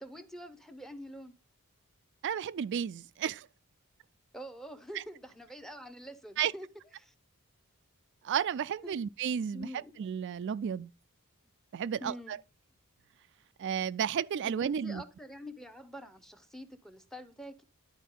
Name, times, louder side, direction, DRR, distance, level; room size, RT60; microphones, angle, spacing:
voice 1, 0.0-1.3 4.3-6.7 7.0-7.1 8.8-8.9 9.5-9.9 12.0-12.4 14.4-17.6, equal, ahead, 0.7 m, -46 dB
voice 2, 2.2-3.5 4.9-5.0 6.4-6.5 8.2-9.7 10.0-10.9 11.7-12.4 13.6-15.0, right 8 dB, 55° right, 0.3 m, -32 dB
11.0 x 4.6 x 3.7 m
head